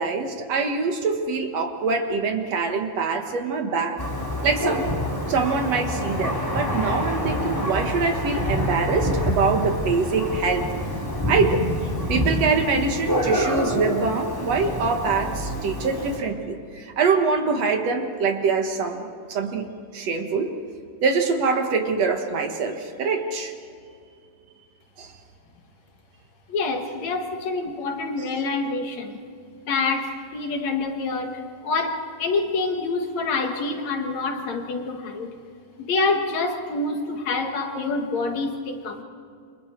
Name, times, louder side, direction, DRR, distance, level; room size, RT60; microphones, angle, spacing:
voice 1, 0.0-4.1 4.4-4.9 5.3-10.7 11.3-11.7 12.1-20.5 21.0-23.5 25.0-25.1, right 4 dB, 60° right, 5 dB, 2.5 m, -24 dB
Thunder, 4.0-16.2, equal, 5° left, 2.9 m, -27 dB
voice 2, 26.5-29.2 29.7-35.3 35.8-39.0, left 3 dB, 65° left, 4 dB, 2.8 m, -26 dB
29.0 x 26.0 x 4.6 m, 2.3 s
omnidirectional pair, 3.5 m